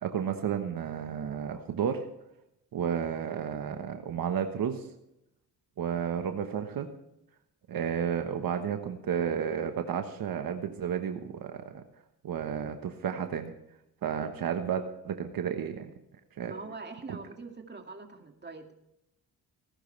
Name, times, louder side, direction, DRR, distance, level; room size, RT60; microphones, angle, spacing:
voice 1, 0.0-2.0 2.7-4.9 5.8-6.9 7.7-11.8 12.2-13.5 14.0-15.9 16.4-16.5 17.1-17.2, right 8 dB, 70° right, 6 dB, 1.3 m, -32 dB
voice 2, 16.5-18.7, right 3 dB, 30° right, 4 dB, 2.3 m, -43 dB
18.5 x 11.5 x 3.4 m, 0.83 s
cardioid pair, 80°, 37 cm